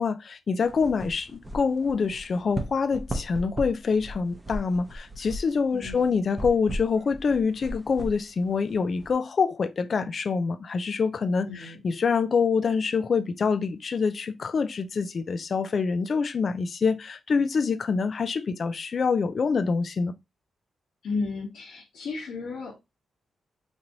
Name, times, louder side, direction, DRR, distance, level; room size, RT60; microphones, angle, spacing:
voice 1, 0.0-20.1, left 5 dB, 50° left, 0.3 m, -26 dB
sound 1, 0.6-9.1, equal, 15° right, 0.7 m, -37 dB
voice 2, 5.7-6.1 11.4-11.8 21.0-22.7, left 4 dB, 85° left, 1.1 m, -33 dB
4.0 x 3.0 x 2.6 m
cardioid pair, 115°, 0 cm